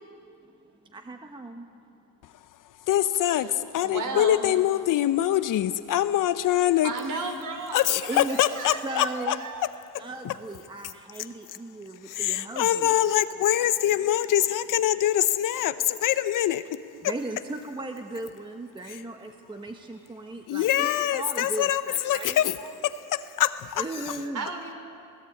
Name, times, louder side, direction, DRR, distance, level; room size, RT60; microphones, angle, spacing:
voice 1, 0.8-1.7 8.1-8.5 8.8-9.4 10.0-13.0 13.2-13.3 13.8-14.2 17.0-22.4 23.8-24.4, right 2 dB, 10° right, 5 dB, 1.1 m, -37 dB
voice 2, 2.9-6.9 7.7-9.4 10.2-10.3 12.1-16.8 18.9-19.0 20.5-24.2, left 12 dB, 50° left, 12 dB, 0.8 m, -24 dB
voice 3, 3.8-4.5 6.8-9.7 24.3-24.7, right 3 dB, 45° right, 5 dB, 3.6 m, -35 dB
21.5 x 17.5 x 8.4 m, 2.7 s
cardioid pair, 115°, 42 cm